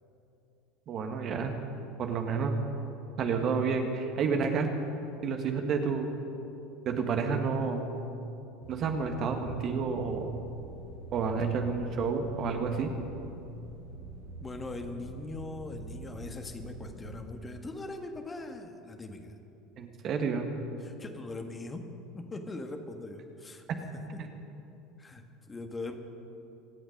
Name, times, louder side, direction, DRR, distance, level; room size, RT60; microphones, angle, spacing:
voice 1, 0.9-1.5 2.0-2.5 3.2-4.7 5.2-6.1 6.9-7.9 8.7-10.3 11.1-12.9 19.8-20.5, right 5 dB, 45° right, 4 dB, 1.7 m, -30 dB
sound 1, 8.6-17.2, right 2 dB, 75° right, 2.1 m, -46 dB
voice 2, 14.4-19.3 20.8-21.9 22.1-23.6 23.9-24.0 25.0-26.0, left 2 dB, 20° left, 5 dB, 1.6 m, -41 dB
25.0 x 8.8 x 5.3 m, 2.8 s
hypercardioid pair, 75°, 0 cm